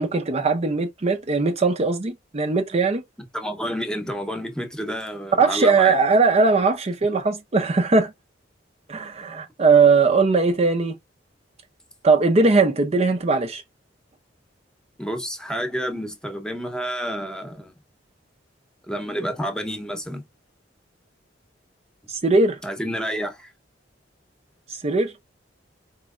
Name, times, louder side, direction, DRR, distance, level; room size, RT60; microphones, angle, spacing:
voice 1, 0.0-3.0 5.4-8.1 8.9-11.0 12.0-13.6 22.1-22.6 24.8-25.1, right 4 dB, 35° right, 0.6 m, -19 dB
voice 2, 3.3-5.9 15.0-17.7 18.9-20.2 22.6-23.5, equal, 5° left, 0.9 m, -29 dB
4.6 x 3.0 x 2.4 m
head